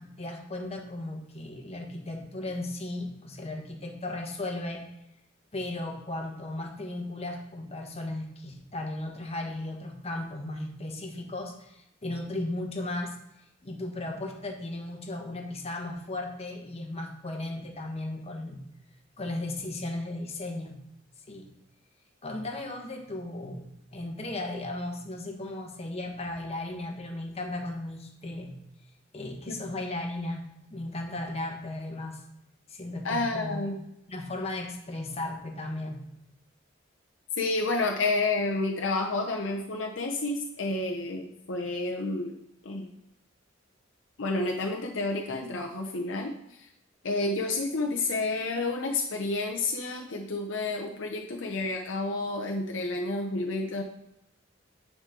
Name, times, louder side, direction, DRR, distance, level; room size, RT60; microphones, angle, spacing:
voice 1, 0.0-4.8 5.5-13.2 13.6-18.6 19.2-20.8 21.3-21.5 22.2-28.6 29.1-30.4 30.7-32.2 32.7-33.6 34.1-36.0, left 2 dB, 35° left, 2 dB, 1.3 m, -36 dB
voice 2, 33.0-33.7 37.4-42.4 42.6-42.9 44.2-46.7 47.0-53.8, left 2 dB, 90° left, 1 dB, 0.8 m, -30 dB
9.3 x 5.1 x 3.8 m, 0.84 s
head